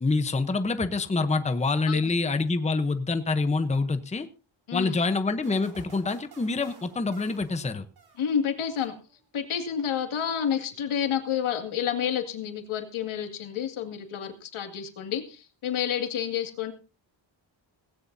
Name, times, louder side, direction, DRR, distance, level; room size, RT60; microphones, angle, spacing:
voice 1, 0.0-4.3 4.7-7.8, left 3 dB, 15° left, 10 dB, 0.9 m, -26 dB
voice 2, 4.7-5.0 8.2-9.0 9.3-16.7, left 8 dB, 80° left, 5 dB, 2.4 m, -29 dB
sound 1, 5.4-8.4 8.8-9.4, right 5 dB, 50° right, 4.0 m, -52 dB
18.0 x 16.5 x 2.7 m, 0.32 s
wide cardioid pair, 145°, 48 cm